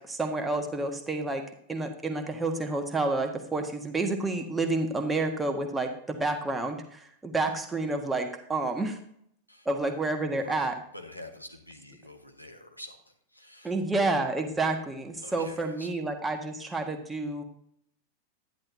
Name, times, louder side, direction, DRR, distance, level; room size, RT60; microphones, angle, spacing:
voice 1, 0.0-1.4 1.7-9.0 9.6-10.7 13.6-17.4, right 2 dB, 10° right, 4 dB, 1.3 m, -29 dB
voice 2, 10.3-13.8 15.2-15.9, left 1 dB, 90° left, 2 dB, 1.5 m, -47 dB
11.0 x 10.5 x 2.7 m, 0.68 s
figure-of-eight pair, 90°, 0 cm